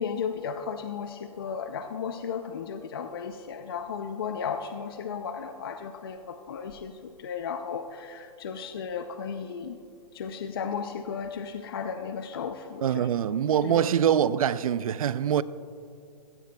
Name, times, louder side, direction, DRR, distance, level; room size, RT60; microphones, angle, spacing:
voice 1, 0.0-9.8 10.1-13.1 13.6-13.9, left 6 dB, 35° left, 0.4 m, -35 dB
voice 2, 12.8-15.4, right 9 dB, 60° right, 0.4 m, -24 dB
16.0 x 15.0 x 2.2 m
hypercardioid pair, 175°, 20 cm